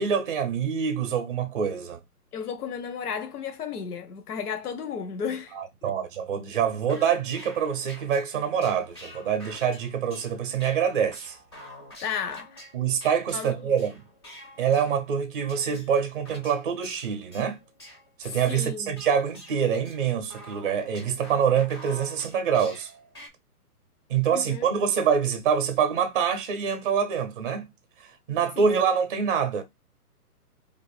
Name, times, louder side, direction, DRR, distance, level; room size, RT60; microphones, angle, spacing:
voice 1, 0.0-2.0 5.5-11.4 12.7-14.1 14.6-17.6 18.2-22.9 24.1-27.7 28.3-29.6, right 7 dB, 35° right, 0.6 m, -25 dB
voice 2, 2.3-5.5 5.8-5.9 12.0-12.6 13.3-13.5 18.5-18.9 24.3-24.6 28.6-28.8, left 7 dB, 75° left, 0.7 m, -33 dB
sound 1, 6.6-15.2 15.5-23.3, left 1 dB, 20° left, 0.4 m, -48 dB
2.5 x 2.5 x 4.0 m
hypercardioid pair, 140°, 46 cm